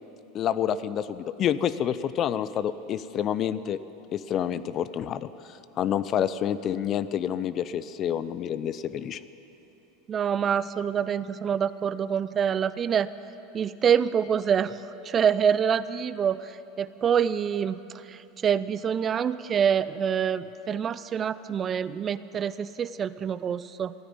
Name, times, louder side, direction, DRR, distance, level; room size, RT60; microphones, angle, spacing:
voice 1, 0.3-3.8 4.1-9.2, left 9 dB, 40° left, 15 dB, 0.5 m, -28 dB
voice 2, 10.1-13.1 13.5-14.8 15.0-16.5 16.8-17.8 18.1-23.9, right 8 dB, 35° right, 16 dB, 0.5 m, -26 dB
15.5 x 10.0 x 9.1 m, 3.0 s
hypercardioid pair, 85°, 0 cm